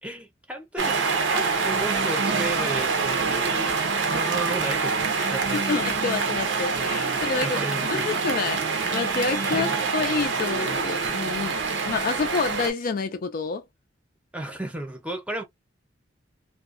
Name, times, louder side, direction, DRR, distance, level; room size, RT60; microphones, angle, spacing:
voice 1, 0.0-3.8 4.1-5.6 7.4-8.2 9.5-9.8 10.4-10.6 14.3-15.4, right 1 dB, 5° right, 0.6 m, -34 dB
sound 1, 0.8-12.7, right 4 dB, 70° right, 0.7 m, -25 dB
voice 2, 5.2-11.6 11.8-13.6, left 4 dB, 45° left, 0.3 m, -28 dB
2.4 x 2.2 x 2.4 m
head